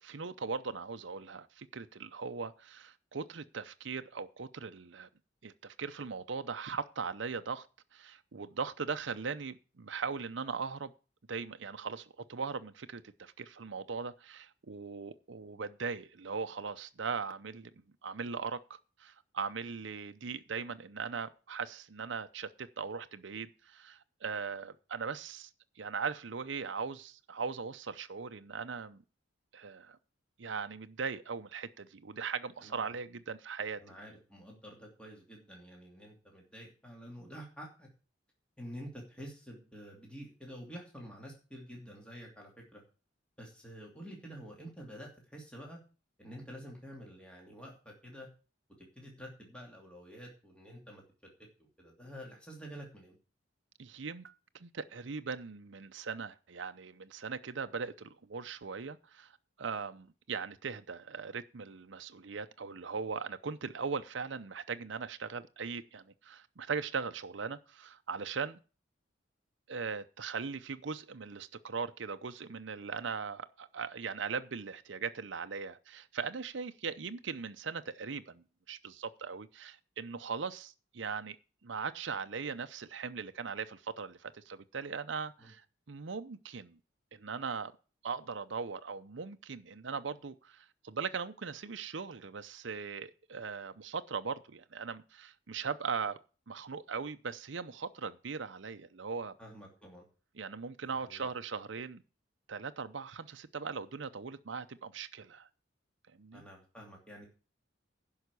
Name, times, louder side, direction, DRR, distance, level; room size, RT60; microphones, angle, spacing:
voice 1, 0.0-5.1 5.4-7.7 7.9-10.9 11.3-17.7 18.0-25.5 25.8-29.0 29.5-30.0 30.4-33.8 53.8-68.6 69.7-81.4 81.6-86.8 87.1-87.7 88.0-96.2 96.5-99.3 100.4-102.0 102.5-105.5 106.1-106.4, right 5 dB, 65° right, 0.7 m, -39 dB
voice 2, 32.6-32.9 33.8-37.9 38.6-42.8 43.4-45.8 46.2-48.3 48.9-51.0 51.8-53.1 85.4-85.5 99.4-100.1 100.8-101.3 106.3-107.3, equal, 5° left, 2.8 m, -49 dB
11.0 x 5.6 x 8.2 m
head